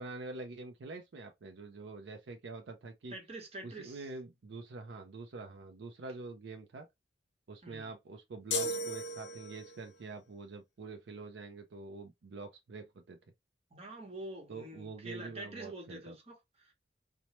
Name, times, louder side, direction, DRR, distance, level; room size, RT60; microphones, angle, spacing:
voice 1, 0.0-3.2 3.6-6.9 7.5-13.2 14.5-16.1, right 3 dB, 70° right, 0.4 m, -46 dB
voice 2, 3.1-4.0 7.6-7.9 13.7-16.7, right 1 dB, 35° right, 0.9 m, -46 dB
sound 1, 8.5-9.9, equal, 65° left, 0.6 m, -35 dB
2.9 x 2.1 x 2.9 m
head